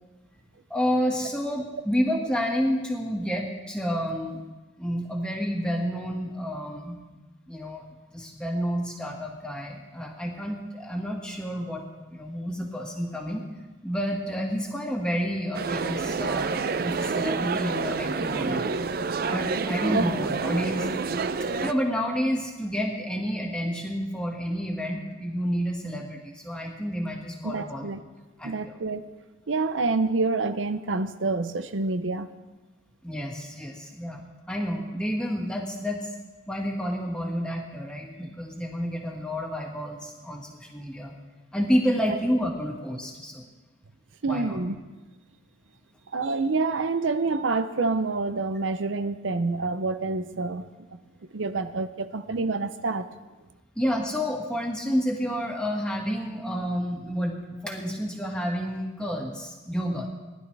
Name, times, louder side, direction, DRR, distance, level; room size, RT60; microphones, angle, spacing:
voice 1, 0.7-4.5 4.8-7.0 7.5-7.9 8.1-11.8 12.1-13.4 13.8-18.6 19.2-20.9 21.6-27.9 28.4-28.7 33.0-36.1 36.5-41.1 41.5-43.5 44.2-44.6 53.8-60.1, equal, 5° left, -1 dB, 1.8 m, -29 dB
sound 1, 15.5-21.7, right 4 dB, 50° right, 0.4 m, -28 dB
voice 2, 19.9-20.6 27.4-28.0 28.4-29.1 29.5-32.3 42.1-42.2 44.2-44.8 46.1-50.7 51.3-53.1, right 3 dB, 85° right, 10 dB, 0.7 m, -27 dB
19.5 x 11.5 x 3.4 m, 1.2 s
head